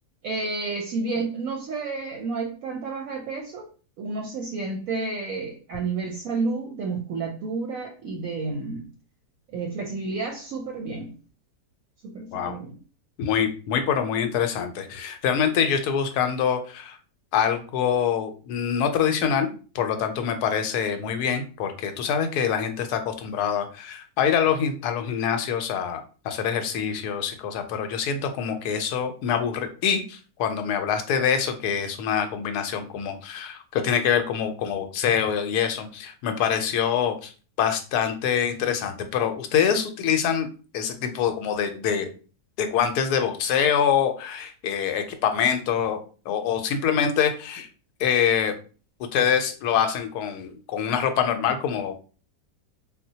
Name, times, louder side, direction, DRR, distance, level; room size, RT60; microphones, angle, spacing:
voice 1, 0.2-3.7 4.0-8.9 9.5-11.1 12.0-12.8, right 3 dB, 70° right, 0.9 m, -30 dB
voice 2, 13.2-17.0 17.3-19.5 19.7-26.0 26.2-37.3 37.6-40.5 40.7-42.1 42.6-46.0 46.3-47.7 48.0-48.5 49.1-52.0, left 8 dB, 75° left, 1.1 m, -25 dB
4.0 x 2.1 x 2.7 m
omnidirectional pair, 1.8 m